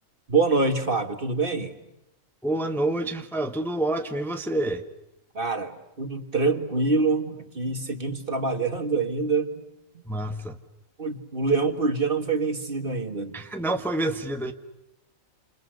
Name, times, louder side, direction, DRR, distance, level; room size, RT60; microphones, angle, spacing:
voice 1, 0.3-1.7 5.3-9.6 9.9-10.0 11.0-13.4, right 3 dB, 40° right, 7 dB, 2.1 m, -25 dB
voice 2, 2.4-4.8 10.0-10.5 13.3-14.5, right 1 dB, ahead, 6 dB, 1.4 m, -27 dB
29.5 x 28.0 x 6.5 m, 0.89 s
omnidirectional pair, 1.5 m